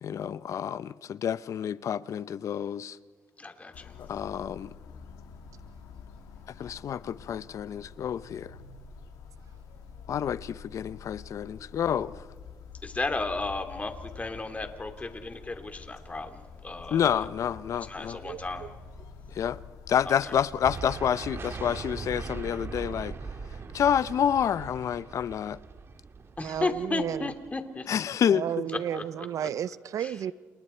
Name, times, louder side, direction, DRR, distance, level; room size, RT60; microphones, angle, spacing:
voice 1, 0.0-3.0 4.0-4.7 6.6-8.5 10.1-12.1 16.9-18.2 19.3-19.6 19.9-23.1 23.7-25.6 27.9-28.7, left 9 dB, 60° left, 0.7 m, -28 dB
voice 2, 3.4-4.0 12.8-17.3 17.8-18.7 20.0-20.4 26.4-27.9 28.9-29.0 29.4-29.5 30.0-30.1, left 3 dB, 25° left, 2.8 m, -34 dB
sound 1, 3.7-20.6, left 5 dB, 80° left, 1.9 m, -47 dB
sound 2, 20.6-27.6, right 5 dB, 45° right, 1.9 m, -40 dB
voice 3, 26.4-27.3 28.3-30.3, right 10 dB, 65° right, 0.7 m, -32 dB
30.0 x 29.5 x 4.5 m
cardioid pair, 75°, 6 cm